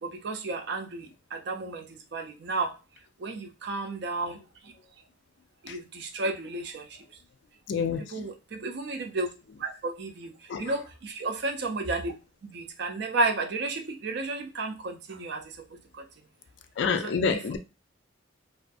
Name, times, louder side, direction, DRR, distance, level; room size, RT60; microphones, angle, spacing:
voice 1, 0.0-2.8 3.2-4.7 5.6-7.0 8.1-9.3 9.6-12.1 12.4-16.1 16.9-17.4, right 3 dB, 55° right, 0.4 m, -33 dB
voice 2, 7.7-8.3 10.5-10.8 16.8-17.6, left 5 dB, 60° left, 0.3 m, -28 dB
2.4 x 2.4 x 2.5 m
head